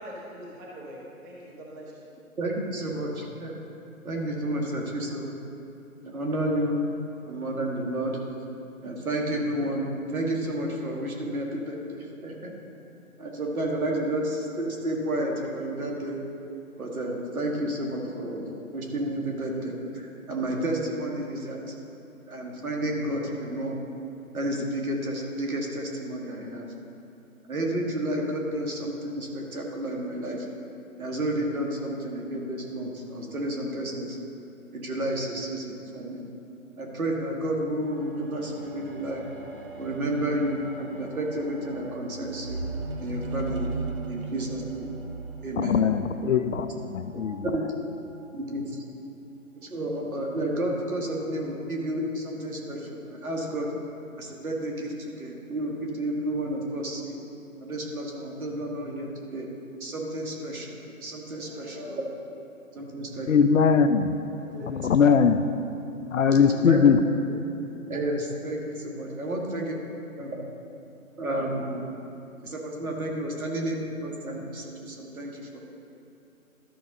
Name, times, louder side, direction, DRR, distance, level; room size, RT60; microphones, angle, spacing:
voice 1, 0.0-2.1 61.3-62.0 64.3-64.8, equal, 15° right, -5 dB, 0.8 m, -43 dB
voice 2, 2.4-3.6 4.0-5.3 6.0-6.8 7.3-8.2 8.8-12.5 13.2-16.2 16.8-21.7 22.3-23.8 24.3-26.7 27.5-30.5 31.0-34.2 34.7-36.2 36.8-39.2 39.8-42.6 43.0-43.7 44.1-44.9 45.4-45.8 47.4-47.6 48.3-48.8 49.6-53.7 54.2-57.2 57.6-59.5 59.8-62.0 62.8-63.5 64.8-65.0 66.5-67.0 67.9-69.8 70.2-70.4 71.2-71.9 72.4-75.6, right 1 dB, 75° right, 0 dB, 1.9 m, -31 dB
sound 1, 37.8-47.4 48.2-48.3, right 3 dB, 40° right, 1.0 m, -38 dB
voice 3, 45.6-47.5 63.3-64.2 64.6-65.4 66.1-67.0, left 6 dB, 60° left, 10 dB, 0.6 m, -21 dB
12.5 x 5.5 x 3.8 m, 2.9 s
figure-of-eight pair, 145°, 43 cm